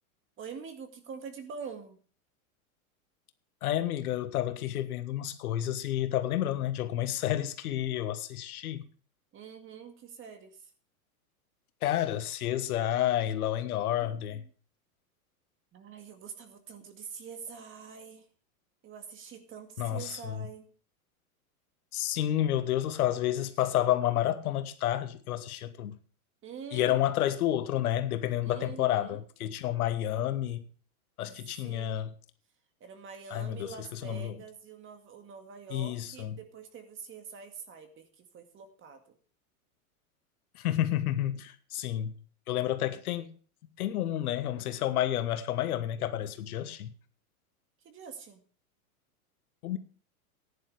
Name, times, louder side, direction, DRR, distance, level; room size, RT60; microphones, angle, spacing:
voice 1, 0.4-2.0 9.3-10.7 14.0-14.5 15.7-18.3 18.8-20.7 26.4-27.0 28.4-29.2 31.6-32.0 32.8-39.2 47.8-48.4, right 6 dB, 25° right, 2.0 m, -45 dB
voice 2, 3.6-8.8 11.8-14.4 19.8-20.5 21.9-25.9 26.7-30.6 31.2-32.1 33.3-34.4 35.7-36.3 40.5-42.1 42.5-43.3 43.8-46.9 49.6-49.8, left 12 dB, 75° left, 1.4 m, -30 dB
14.5 x 10.5 x 3.4 m
hypercardioid pair, 125°, 44 cm